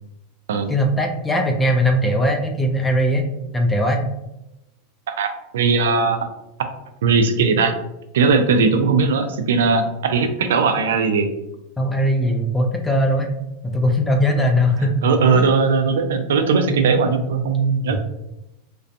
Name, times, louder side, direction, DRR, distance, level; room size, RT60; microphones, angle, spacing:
voice 1, 0.7-3.2 3.5-4.1 11.8-13.3 13.6-15.1 15.3-15.5 17.9-18.0, equal, 10° left, 3 dB, 0.3 m, -20 dB
voice 2, 5.5-6.3 7.0-7.7 8.1-11.3 15.0-18.0, right 4 dB, 85° right, 7 dB, 0.3 m, -18 dB
2.5 x 2.2 x 2.5 m, 0.90 s
supercardioid pair, 130°, 0 cm